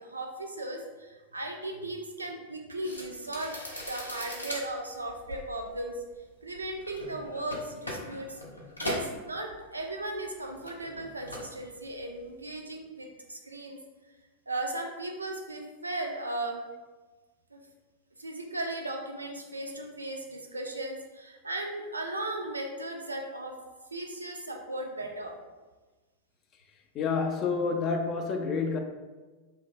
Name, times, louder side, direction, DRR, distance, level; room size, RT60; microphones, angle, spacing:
voice 1, 0.0-6.0 6.4-8.4 8.8-13.8 14.5-16.6 17.5-17.6 18.2-23.6 23.9-25.3, right 2 dB, 80° right, 0.4 m, -36 dB
sound 1, 2.8-10.1 10.3-11.6 11.9-12.3, left 1 dB, 80° left, 0.5 m, -40 dB
voice 2, 26.9-28.8, left 4 dB, 35° left, 0.3 m, -28 dB
2.7 x 2.0 x 3.4 m
figure-of-eight pair, 90°, 0 cm